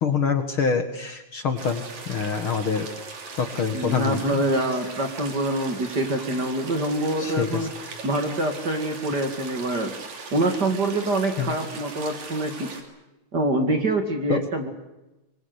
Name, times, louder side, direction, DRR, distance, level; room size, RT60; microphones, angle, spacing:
voice 1, 0.0-2.9 3.4-4.4 7.2-7.5 11.4-11.5 14.3-14.4, left 5 dB, 50° left, 7 dB, 2.1 m, -25 dB
sound 1, 1.6-12.8, right 4 dB, 70° right, 4.4 m, -39 dB
voice 2, 3.7-7.7 8.0-9.9 10.3-12.7 13.3-14.7, right 1 dB, 35° right, 5 dB, 2.6 m, -25 dB
24.5 x 22.5 x 8.1 m, 1.0 s
omnidirectional pair, 3.4 m